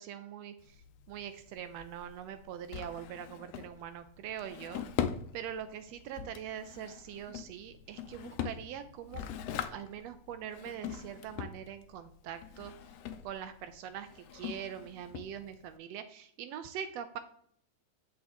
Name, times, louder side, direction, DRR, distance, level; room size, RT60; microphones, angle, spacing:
voice 1, 0.0-4.9 5.3-9.2 9.7-12.7 13.2-17.2, right 9 dB, 80° right, 10 dB, 1.5 m, -43 dB
Drawer open or close, 0.6-15.8, left 9 dB, 75° left, 1.5 m, -42 dB
9.1 x 6.2 x 3.5 m, 0.66 s
omnidirectional pair, 3.4 m